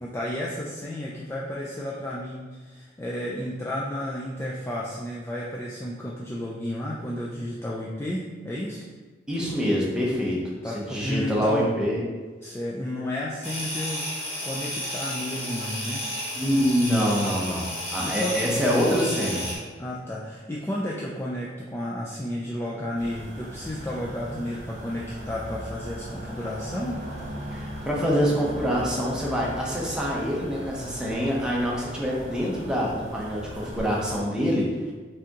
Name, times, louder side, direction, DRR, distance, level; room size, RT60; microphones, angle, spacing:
voice 1, 0.0-8.8 10.6-11.7 12.4-16.1 18.0-18.4 19.8-27.0, left 1 dB, 15° left, -4 dB, 0.3 m, -32 dB
voice 2, 9.3-12.0 16.3-19.5 27.5-34.7, equal, 5° right, -5 dB, 0.8 m, -25 dB
sound 1, 13.4-19.6, equal, 35° left, 1.3 m, -32 dB
sound 2, 23.0-34.2, equal, 40° right, 0.8 m, -38 dB
5.0 x 3.5 x 2.9 m, 1.4 s
head